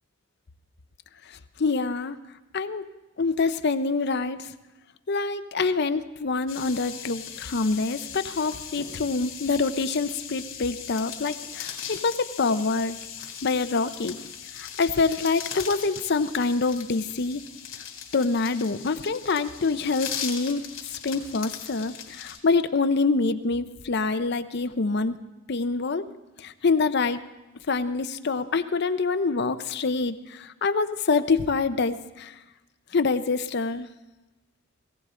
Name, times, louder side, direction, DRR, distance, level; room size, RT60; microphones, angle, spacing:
voice 1, 1.3-2.2 2.5-2.9 3.2-4.5 5.1-13.0 13.4-14.2 14.5-17.4 18.1-25.2 25.5-26.1 26.4-27.2 27.7-32.3 32.9-33.9, left 4 dB, 55° left, 11 dB, 0.6 m, -26 dB
sound 1, 6.5-22.4, left 8 dB, 80° left, 2.7 m, -39 dB
18.0 x 16.5 x 3.8 m, 1.0 s
head